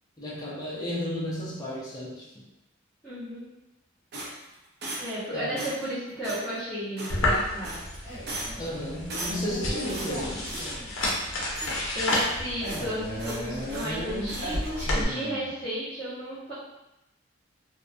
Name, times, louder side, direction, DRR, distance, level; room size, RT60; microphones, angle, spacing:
voice 1, 0.2-2.4 5.3-5.7 8.6-10.5, left 1 dB, 20° left, -6 dB, 0.5 m, -33 dB
voice 2, 3.0-3.5 5.0-7.8 11.9-16.5, equal, ahead, -19 dB, 1.0 m, -33 dB
sound 1, 4.1-5.2 5.6-5.9 6.2-6.5 7.0-7.4 7.6-8.0 8.3-8.7 9.1-9.6 9.9-10.7 11.0-11.3 11.5-12.4 12.6-12.9 13.2-13.9 14.3-14.5, right 1 dB, 50° right, 0.5 m, -38 dB
sound 2, 7.1-15.0, left 1 dB, 75° left, 0.6 m, -31 dB
Male speech man speaking, 8.0-11.0 12.6-15.6, equal, 35° right, 1.2 m, -37 dB
2.4 x 2.1 x 2.5 m, 0.91 s
head